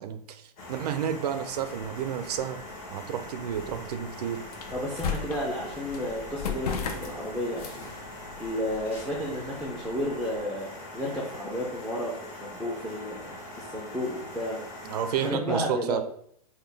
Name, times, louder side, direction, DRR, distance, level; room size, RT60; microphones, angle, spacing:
voice 1, 0.0-2.6 2.9-4.4 14.8-16.0, right 9 dB, 80° right, 10 dB, 0.5 m, -31 dB
sound 1, 0.6-15.3, left 1 dB, 35° left, 1.0 m, -42 dB
sound 2, 1.3-10.4, left 7 dB, 70° left, 0.6 m, -39 dB
voice 2, 4.7-7.9 8.4-14.6 15.2-16.0, equal, ahead, -4 dB, 0.4 m, -32 dB
3.8 x 2.2 x 3.3 m, 0.66 s
supercardioid pair, 150°, 20 cm